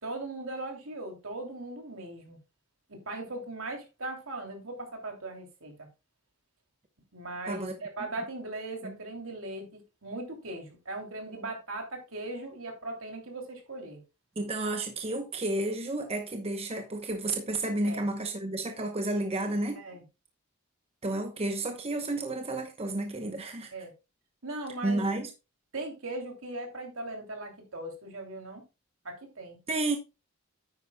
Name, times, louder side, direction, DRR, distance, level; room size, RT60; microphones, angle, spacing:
voice 1, 0.0-2.4 2.9-5.9 7.1-14.0 17.9-18.0 19.8-20.0 23.7-23.9 24.4-25.0 25.7-28.6 29.0-29.6, right 2 dB, 75° right, 3.0 m, -39 dB
voice 2, 7.4-7.8 8.8-9.0 14.4-19.8 21.0-23.7 24.8-25.3 29.7-30.0, right 2 dB, 30° right, 0.9 m, -31 dB
9.7 x 9.1 x 2.3 m
head